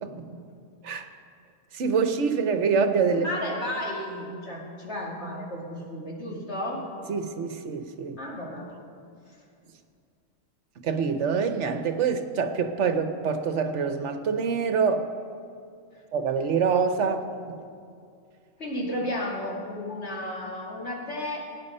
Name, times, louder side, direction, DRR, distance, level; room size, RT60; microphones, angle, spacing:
voice 1, 1.7-3.3 7.1-8.2 10.8-15.1 16.1-17.3, right 5 dB, 65° right, 8 dB, 1.2 m, -25 dB
voice 2, 3.1-6.8 8.2-8.7 9.3-9.4 15.9-16.0 18.6-21.5, left 1 dB, 60° left, -2 dB, 2.5 m, -33 dB
17.5 x 9.5 x 5.5 m, 2.4 s
omnidirectional pair, 1.3 m